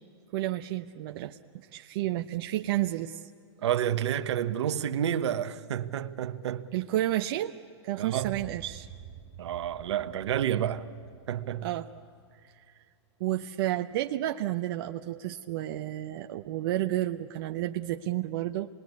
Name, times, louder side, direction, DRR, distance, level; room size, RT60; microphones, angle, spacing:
voice 1, 0.3-1.4 1.7-3.3 6.7-7.5 7.8-8.9 11.6-11.9 12.4-12.5 13.2-18.7, right 14 dB, 50° right, 0.7 m, -31 dB
voice 2, 3.6-6.7 8.0-8.4 9.4-10.9 11.3-11.7, right 10 dB, 70° right, 1.1 m, -29 dB
sound 1, 8.2-12.5, right 9 dB, 30° right, 1.0 m, -49 dB
26.5 x 20.5 x 9.5 m
hypercardioid pair, 135°, 15 cm